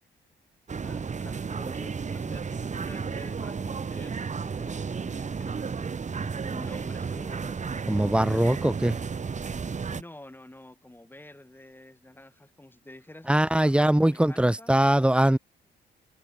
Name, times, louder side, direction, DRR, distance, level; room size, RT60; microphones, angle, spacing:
sound 1, 0.7-10.0, right 5 dB, 35° right, 3.2 m, -33 dB
voice 1, 0.8-8.4 9.9-14.8, left 1 dB, 10° left, 4.5 m, -48 dB
voice 2, 7.9-9.0 13.3-15.4, right 1 dB, 5° right, 1.6 m, -22 dB
cardioid pair, 90°, 20 cm